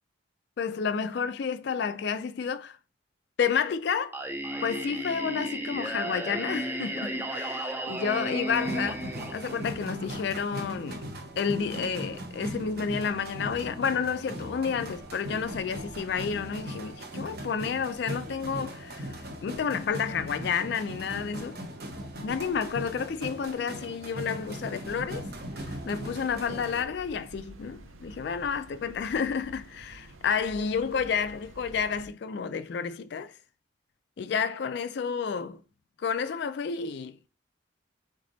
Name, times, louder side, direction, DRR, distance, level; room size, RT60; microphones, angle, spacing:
voice 1, 0.6-2.8 3.4-4.2 4.6-11.0 11.4-21.6 22.2-25.3 25.6-33.3 34.2-35.6 36.0-37.3, left 6 dB, 55° left, 0.3 m, -30 dB
Singing, 4.1-10.1, right 1 dB, 10° right, 0.4 m, -34 dB
sound 1, 8.5-26.8, equal, 50° right, 0.9 m, -39 dB
sound 2, 24.8-32.1, right 2 dB, 85° right, 0.5 m, -49 dB
3.6 x 3.3 x 3.9 m
head